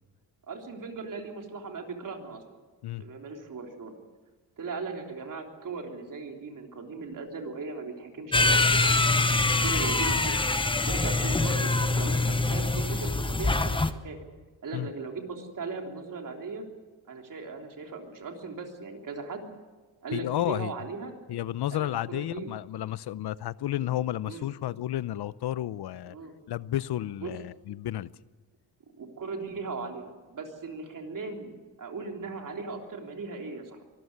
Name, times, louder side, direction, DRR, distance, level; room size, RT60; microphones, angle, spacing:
voice 1, 0.5-2.4 2.9-4.0 4.6-9.0 9.6-10.3 10.8-14.2 14.6-16.6 17.1-19.4 20.0-21.1 21.7-22.5 23.8-23.9 24.3-24.5 26.1-26.4 27.2-27.3 29.0-33.8, right 4 dB, 45° right, 3.5 m, -38 dB
sound 1, 8.3-13.9, left 2 dB, 10° left, 0.8 m, -24 dB
voice 2, 20.1-20.7 21.3-26.2 26.5-28.1, left 13 dB, 65° left, 0.7 m, -32 dB
24.0 x 14.0 x 9.6 m
cardioid pair, 120°, 43 cm